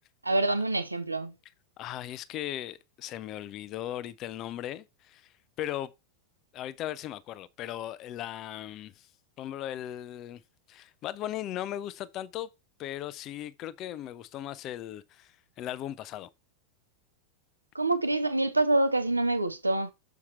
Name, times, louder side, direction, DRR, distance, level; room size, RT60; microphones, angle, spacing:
voice 1, 0.2-1.3 17.7-19.9, right 2 dB, 80° right, 0.8 m, -26 dB
voice 2, 1.8-5.9 6.5-9.1 9.4-10.4 10.7-12.5 12.8-16.3, left 12 dB, 35° left, 0.6 m, -38 dB
7.2 x 4.7 x 4.3 m
figure-of-eight pair, 90°, 0 cm